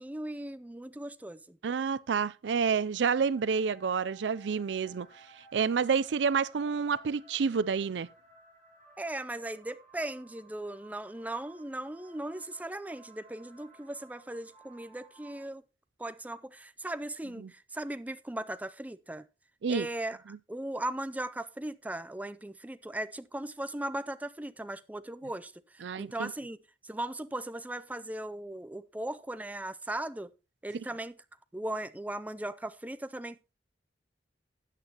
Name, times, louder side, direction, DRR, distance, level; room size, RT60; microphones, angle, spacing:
voice 1, 0.0-1.6 9.0-15.6 16.0-19.3 19.7-20.2 20.5-26.6 26.8-30.3 30.6-31.2 31.5-33.5, right 1 dB, 10° right, 0.5 m, -38 dB
voice 2, 1.6-5.1 5.5-8.1 17.4-17.5 19.6-19.9 25.8-26.3, right 6 dB, 90° right, 0.4 m, -29 dB
sound 1, 3.2-15.4, right 2 dB, 10° left, 3.0 m, -58 dB
13.5 x 9.0 x 2.9 m
head